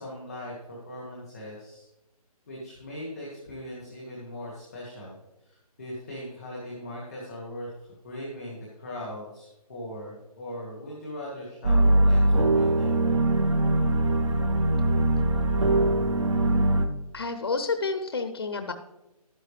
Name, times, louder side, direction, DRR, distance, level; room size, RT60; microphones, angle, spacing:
voice 1, 0.0-1.9 2.5-7.7 8.0-12.9, left 1 dB, ahead, -21 dB, 0.5 m, -39 dB
sound 1, 11.6-16.9, right 1 dB, 50° right, 1.0 m, -22 dB
voice 2, 17.1-18.7, left 4 dB, 40° left, 8 dB, 0.7 m, -29 dB
12.0 x 9.9 x 3.2 m, 0.97 s
hypercardioid pair, 180°, 20 cm